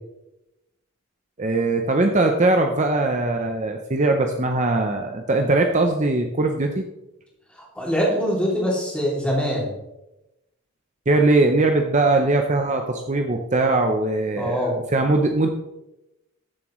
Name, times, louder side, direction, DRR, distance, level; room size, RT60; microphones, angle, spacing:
voice 1, 1.4-6.8 11.1-15.5, right 2 dB, 35° right, 4 dB, 0.6 m, -20 dB
voice 2, 7.6-9.7 14.4-14.8, equal, 5° left, -3 dB, 2.7 m, -23 dB
14.0 x 7.5 x 3.1 m, 0.93 s
head